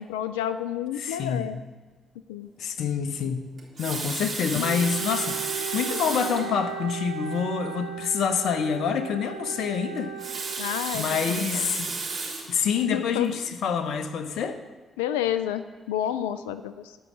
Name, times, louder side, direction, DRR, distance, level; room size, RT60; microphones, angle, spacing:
voice 1, 0.0-1.6 2.3-2.5 4.5-4.9 10.6-11.0 11.4-11.7 12.9-13.3 15.0-17.0, left 10 dB, 85° left, 13 dB, 0.3 m, -30 dB
voice 2, 1.0-1.5 2.6-3.4 3.8-10.1 10.9-12.0 12.5-14.6, left 7 dB, 65° left, 10 dB, 0.8 m, -27 dB
Water tap faucet, 3.6-6.5 7.3-7.4 7.7-7.8 10.0-12.6 13.2-13.4, right 4 dB, 55° right, 3.5 m, -32 dB
Wind instrument woodwind instrument, 4.6-11.0, right 10 dB, 90° right, 0.7 m, -37 dB
15.0 x 5.6 x 6.2 m, 1.4 s
hypercardioid pair, 40°, 0 cm